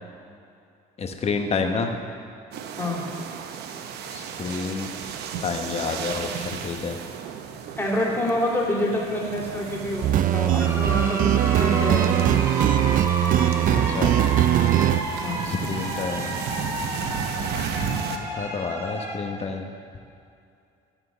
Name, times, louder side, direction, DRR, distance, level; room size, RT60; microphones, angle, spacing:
voice 1, 1.0-1.9 4.1-4.9 5.4-7.0 13.7-14.1 15.4-16.4 18.2-19.7, left 5 dB, 40° left, 4 dB, 1.0 m, -29 dB
sound 1, 2.5-18.2, right 7 dB, 75° right, 0.7 m, -34 dB
voice 2, 7.8-12.3 15.2-15.4, left 1 dB, 15° left, -4 dB, 2.4 m, -27 dB
sound 2, 10.0-15.0, right 12 dB, 55° right, 0.4 m, -20 dB
sound 3, 10.6-19.2, right 1 dB, 15° right, 1.5 m, -32 dB
13.0 x 4.5 x 7.1 m, 2.5 s
cardioid pair, 110°, 17 cm